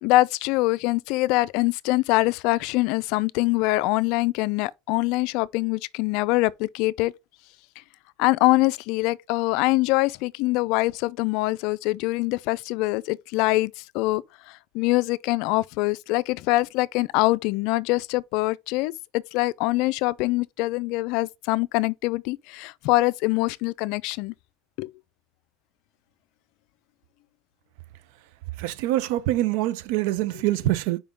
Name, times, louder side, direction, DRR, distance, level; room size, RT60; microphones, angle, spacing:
voice 1, 0.0-7.1 8.2-24.3 24.8-24.9 30.3-30.4, left 20 dB, 65° left, 0.4 m, -24 dB
voice 2, 28.6-31.0, right 15 dB, 75° right, 0.5 m, -24 dB
5.0 x 3.7 x 5.1 m
supercardioid pair, 125°, 0 cm